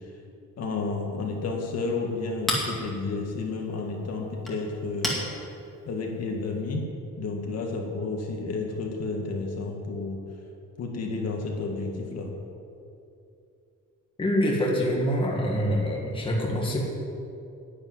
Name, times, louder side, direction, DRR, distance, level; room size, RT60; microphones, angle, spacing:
voice 1, 0.6-5.3 5.9-6.8 7.2-10.2 10.8-12.3, left 3 dB, 55° left, 1 dB, 1.9 m, -31 dB
Chink clink, 1.2-6.7, left 1 dB, ahead, 2.2 m, -36 dB
voice 2, 14.2-16.9, equal, 15° left, -2 dB, 1.7 m, -25 dB
10.5 x 8.8 x 9.5 m, 2.7 s
cardioid pair, 175°, 31 cm